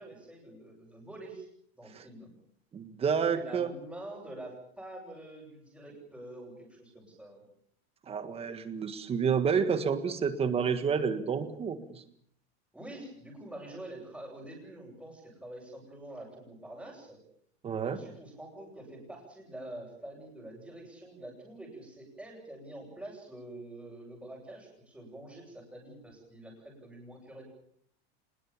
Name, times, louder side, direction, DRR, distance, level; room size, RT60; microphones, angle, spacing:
voice 1, 0.0-1.5 1.8-2.3 3.3-7.4 12.7-17.2 17.8-27.4, right 1 dB, ahead, -8 dB, 7.4 m, -46 dB
voice 2, 2.7-3.7 8.1-12.0 17.6-18.0, right 6 dB, 20° right, 11 dB, 1.6 m, -29 dB
25.5 x 21.0 x 7.3 m, 0.65 s
supercardioid pair, 165°, 32 cm